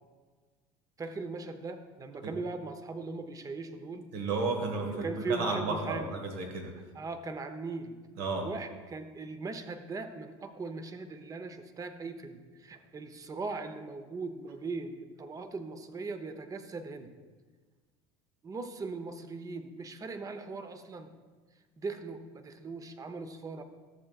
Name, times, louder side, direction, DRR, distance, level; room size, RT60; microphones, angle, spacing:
voice 1, 1.0-4.1 4.7-6.2 6.9-8.0 8.4-17.1 18.4-21.1 21.8-23.6, right 3 dB, 25° right, 9 dB, 0.8 m, -39 dB
voice 2, 4.1-6.7 8.2-8.5, right 3 dB, 75° right, 3 dB, 1.7 m, -32 dB
14.0 x 7.5 x 2.4 m, 1.4 s
supercardioid pair, 90°, 13 cm